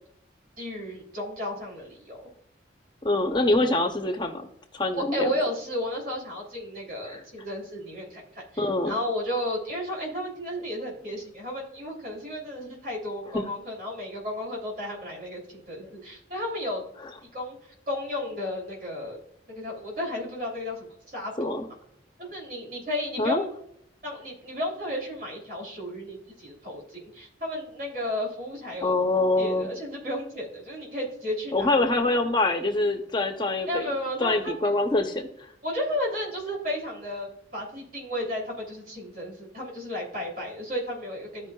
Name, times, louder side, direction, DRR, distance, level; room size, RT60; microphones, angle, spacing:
voice 1, 0.6-2.3 4.9-16.8 17.3-19.2 19.5-21.6 22.2-23.5 24.0-28.9 29.4-31.8 33.6-34.5 35.6-41.5, left 1 dB, 50° right, -2 dB, 3.1 m, -33 dB
voice 2, 3.0-4.5 4.7-5.3 7.1-7.2 8.6-8.9 13.3-13.4 21.4-21.7 23.2-23.4 28.8-29.7 31.5-33.9 34.2-35.3, left 2 dB, 25° left, 4 dB, 0.7 m, -25 dB
14.5 x 5.1 x 2.3 m, 0.73 s
head